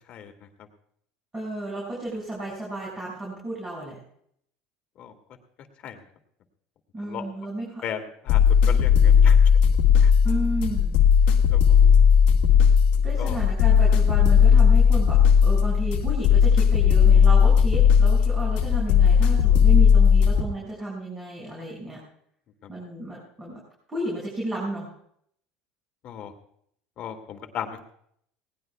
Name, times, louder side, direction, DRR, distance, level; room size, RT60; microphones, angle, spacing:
voice 1, 1.3-4.0 6.9-7.8 10.2-11.0 13.0-22.0 22.7-23.6 23.9-24.9, right 1 dB, 15° right, -4 dB, 6.4 m, -33 dB
voice 2, 7.8-9.4 10.0-10.1 11.5-11.8 12.9-13.4 22.6-22.7 26.0-26.3 27.0-27.8, left 8 dB, 45° left, 5 dB, 2.2 m, -36 dB
sound 1, 8.3-20.4, left 7 dB, 65° left, 1.9 m, -17 dB
20.0 x 18.5 x 2.4 m, 0.68 s
supercardioid pair, 125°, 3 cm